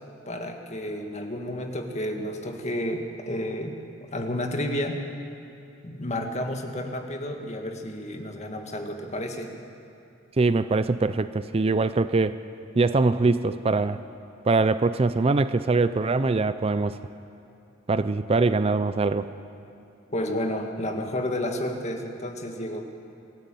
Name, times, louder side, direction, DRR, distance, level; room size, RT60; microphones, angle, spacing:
voice 1, 0.3-5.0 5.8-9.5 20.1-22.8, left 1 dB, 35° left, 4 dB, 1.9 m, -31 dB
voice 2, 10.4-12.4 12.8-14.0 14.4-17.0 17.9-19.3, right 3 dB, 30° right, 13 dB, 0.5 m, -23 dB
22.5 x 13.5 x 9.0 m, 2.6 s
head